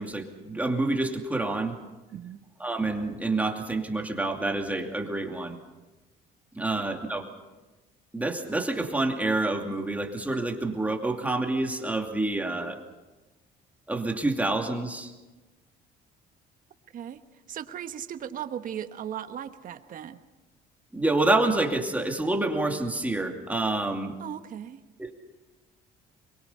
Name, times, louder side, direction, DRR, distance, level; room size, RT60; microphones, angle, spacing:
voice 1, 0.0-1.8 2.6-5.6 6.5-7.3 8.1-12.8 13.9-15.1 20.9-24.2 25.0-25.1, right 2 dB, 10° right, 3 dB, 2.6 m, -28 dB
voice 2, 2.1-2.4 16.9-17.2 17.5-20.2 24.2-24.8, right 9 dB, 55° right, 9 dB, 1.3 m, -37 dB
23.5 x 22.5 x 5.7 m, 1.2 s
cardioid pair, 110°, 17 cm